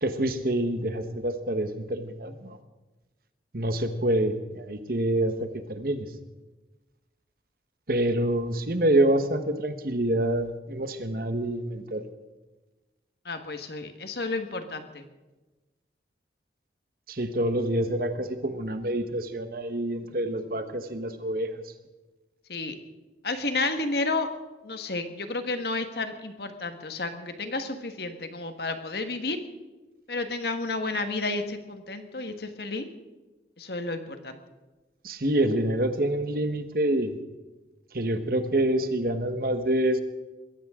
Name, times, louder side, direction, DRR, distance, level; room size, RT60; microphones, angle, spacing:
voice 1, 0.0-2.6 3.5-6.1 7.9-12.0 17.1-21.6 35.0-37.1 37.9-40.0, right 1 dB, 50° right, 9 dB, 1.3 m, -27 dB
voice 2, 13.2-15.0 22.5-22.7 23.2-24.3 24.6-29.4 30.1-32.9 33.6-34.4, left 3 dB, 65° left, 7 dB, 1.6 m, -31 dB
22.0 x 16.0 x 3.7 m, 1.1 s
head